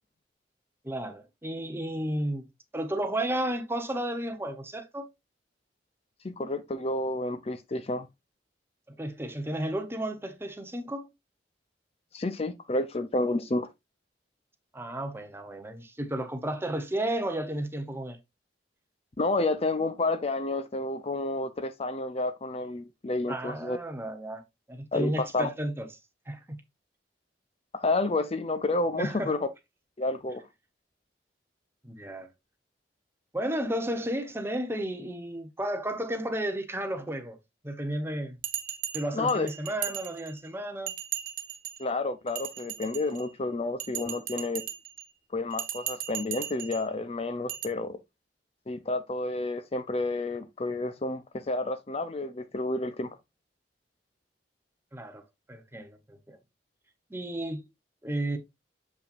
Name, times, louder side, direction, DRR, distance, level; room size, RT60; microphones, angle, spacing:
voice 1, 0.8-2.5 2.7-5.1 9.0-11.1 14.7-18.2 23.3-24.4 24.7-25.9 26.3-26.6 29.0-29.3 31.8-32.3 33.3-37.4 37.6-38.4 38.9-40.9 54.9-55.2 55.5-56.4 57.1-57.6 58.0-58.4, right 1 dB, 15° right, 1.0 m, -33 dB
voice 2, 6.2-8.1 12.1-13.7 19.2-23.8 24.9-25.5 27.7-29.4 30.0-30.4 39.1-39.5 41.8-44.6 45.3-48.0 48.7-53.1, left 2 dB, 35° left, 0.6 m, -30 dB
Bell, 38.4-40.5 40.9-41.8 42.3-43.3 43.8-45.0 45.5-46.8 47.5-47.7, right 10 dB, 55° right, 1.0 m, -37 dB
7.0 x 5.5 x 2.5 m
head